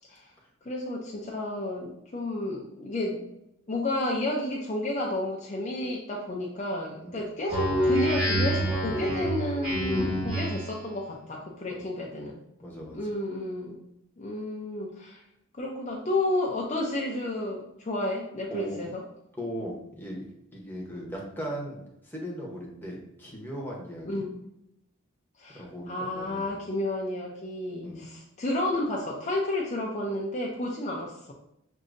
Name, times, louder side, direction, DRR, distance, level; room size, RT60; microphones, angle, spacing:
voice 1, 0.6-3.2 3.7-12.4 12.9-13.8 14.2-15.2 15.5-19.0 20.9-21.0 24.1-24.4 25.4-31.3, left 1 dB, 30° left, -2 dB, 0.5 m, -31 dB
Speech synthesizer, 7.5-10.8, equal, 20° right, 1.5 m, -27 dB
voice 2, 12.6-13.1 18.5-18.8 19.4-20.2 20.5-24.2 25.5-26.5 27.8-28.1, equal, 10° left, -2 dB, 0.9 m, -38 dB
6.2 x 2.7 x 2.6 m, 0.82 s
head